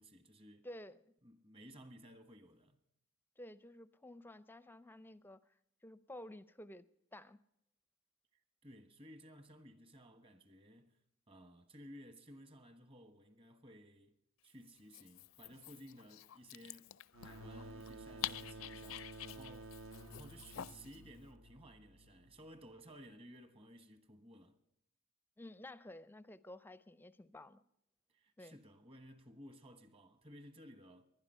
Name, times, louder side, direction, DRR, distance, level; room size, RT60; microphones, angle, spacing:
voice 1, 0.0-0.7 1.2-2.8 8.6-11.0 11.3-14.1 14.4-16.9 17.2-19.8 20.1-24.6 28.1-31.0, equal, 25° right, 1.3 m, -57 dB
voice 2, 0.6-1.1 3.4-5.5 5.8-6.9 7.1-7.4 25.4-27.6 28.4-28.6, left 1 dB, 10° left, 0.5 m, -52 dB
Dog, 14.8-21.0, left 12 dB, 75° left, 0.5 m, -48 dB
sound 1, 17.1-22.6, right 1 dB, 70° right, 1.3 m, -52 dB
20.0 x 11.5 x 5.5 m
head